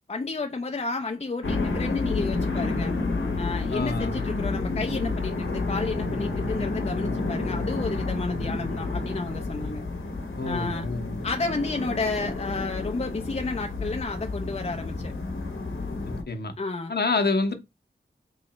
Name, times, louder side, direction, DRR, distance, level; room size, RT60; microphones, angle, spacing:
voice 1, 0.1-3.0 3.4-9.8 10.4-10.9 11.2-15.1 16.6-16.9, left 3 dB, 35° left, 0.5 m, -31 dB
sound 1, 1.4-16.2, left 3 dB, 85° left, 0.9 m, -30 dB
voice 2, 3.7-4.2 10.4-11.2 16.0-16.5 16.9-17.6, left 3 dB, 55° left, 0.8 m, -27 dB
3.7 x 3.1 x 3.0 m
cardioid pair, 40°, 20 cm